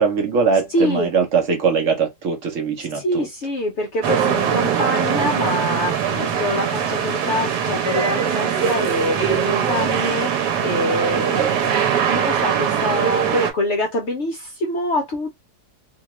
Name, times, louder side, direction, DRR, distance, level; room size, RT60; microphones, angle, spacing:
voice 1, 0.0-3.3 11.2-11.4, right 5 dB, 65° right, 0.9 m, -21 dB
voice 2, 0.7-1.1 2.9-11.7 12.1-15.3, left 1 dB, 65° left, 0.7 m, -25 dB
sound 1, 4.0-13.5, right 8 dB, 90° right, 1.3 m, -21 dB
2.8 x 2.2 x 2.9 m
omnidirectional pair, 1.7 m